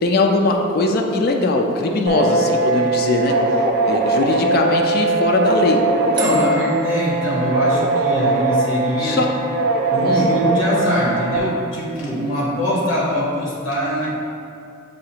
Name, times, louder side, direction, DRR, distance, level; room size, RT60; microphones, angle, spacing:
voice 1, 0.0-3.4 3.8-5.9 9.0-9.3 10.0-10.3, left 2 dB, 50° left, 2 dB, 0.4 m, -20 dB
sound 1, 2.1-11.4, right 2 dB, 55° right, 0.3 m, -20 dB
sound 2, 2.7-4.2 6.2-7.8, right 6 dB, 25° right, 0.7 m, -36 dB
voice 2, 6.0-9.2 9.9-14.1, equal, 70° left, -4 dB, 0.9 m, -22 dB
6.2 x 2.4 x 2.8 m, 2.5 s
head